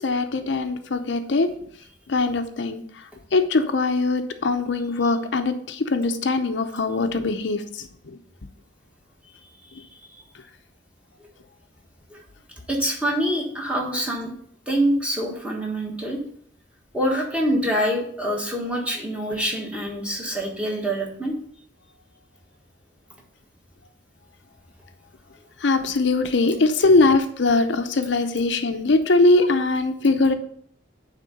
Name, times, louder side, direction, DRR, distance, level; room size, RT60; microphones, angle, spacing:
voice 1, 0.0-1.5 2.1-2.8 3.3-8.2 25.6-30.3, left 3 dB, 70° left, 8 dB, 0.6 m, -21 dB
voice 2, 12.7-14.3 14.7-16.2 16.9-21.4, equal, 5° right, -1 dB, 1.4 m, -25 dB
9.1 x 3.7 x 5.2 m, 0.64 s
head